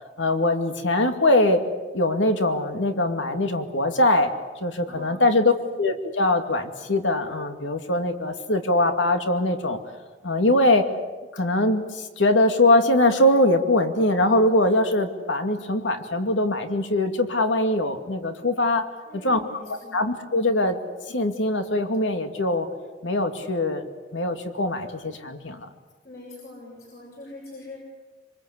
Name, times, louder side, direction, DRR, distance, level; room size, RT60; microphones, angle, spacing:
voice 1, 0.2-4.3 4.6-5.5 5.8-9.8 10.2-10.9 11.3-18.9 19.2-19.4 19.7-20.8 21.1-22.7 23.0-23.9 24.1-25.7, left 1 dB, 90° left, 6 dB, 2.5 m, -22 dB
voice 2, 4.9-5.7 19.1-20.1 26.0-27.8, left 2 dB, 50° left, -3 dB, 7.5 m, -43 dB
26.5 x 25.0 x 8.3 m, 1.3 s
head